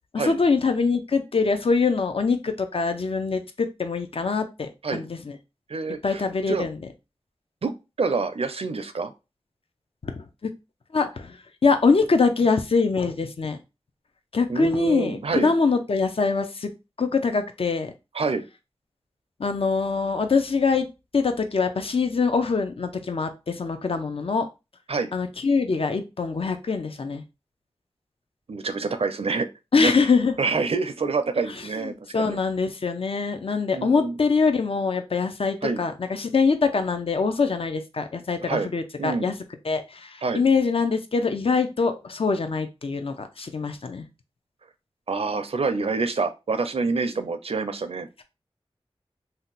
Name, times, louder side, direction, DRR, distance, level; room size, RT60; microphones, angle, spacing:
voice 1, 0.1-5.4 6.0-6.8 10.0-10.5 10.9-13.6 14.3-16.7 17.0-17.9 19.4-20.9 21.1-24.5 25.1-27.2 29.7-30.4 31.5-39.4 39.6-44.1, left 4 dB, 60° left, 7 dB, 0.5 m, -24 dB
voice 2, 5.7-6.2 6.5-6.7 7.6-7.7 8.0-9.1 14.5-15.5 18.1-18.4 24.9-25.1 28.5-29.5 29.8-29.9 30.4-32.4 33.7-34.1 35.6-35.8 38.5-38.7 39.0-39.3 40.2-40.4 45.1-48.1, right 4 dB, 65° right, 9 dB, 0.4 m, -27 dB
2.7 x 2.1 x 3.8 m, 0.27 s
wide cardioid pair, 45°, 11 cm